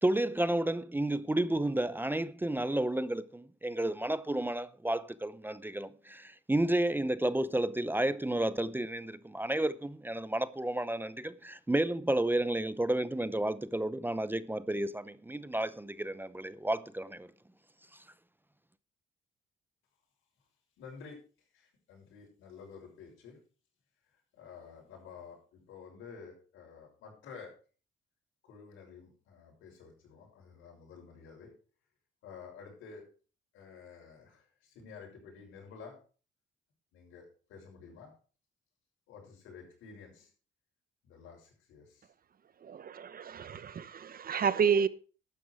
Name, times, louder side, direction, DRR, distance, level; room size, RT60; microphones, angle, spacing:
voice 1, 0.0-17.3, right 1 dB, 10° right, 0.6 m, -31 dB
voice 2, 20.8-21.2 21.5-23.4 24.1-27.5 28.4-31.5 32.2-33.1 33.5-36.0 36.9-38.1 39.1-40.3 41.0-42.1, left 5 dB, 90° left, 6.4 m, -51 dB
voice 3, 42.6-44.9, right 7 dB, 45° right, 0.9 m, -30 dB
12.5 x 9.3 x 4.9 m
cardioid pair, 90°, 20 cm